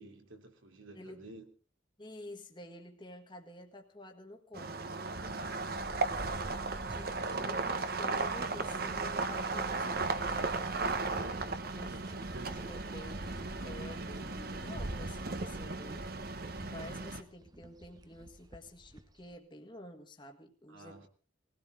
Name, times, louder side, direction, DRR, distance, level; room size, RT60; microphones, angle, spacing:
voice 1, 0.0-1.5 7.1-7.6 10.7-11.6 11.9-12.7 20.7-21.1, right 2 dB, 80° right, 3.0 m, -51 dB
voice 2, 0.9-1.2 2.0-5.0 6.9-10.1 11.7-11.9 12.7-21.1, left 1 dB, 25° left, 1.7 m, -50 dB
sound 1, 4.5-17.2, right 3 dB, 50° right, 1.2 m, -36 dB
sound 2, 5.1-19.3, right 1 dB, 20° right, 0.9 m, -51 dB
20.5 x 16.5 x 3.8 m
head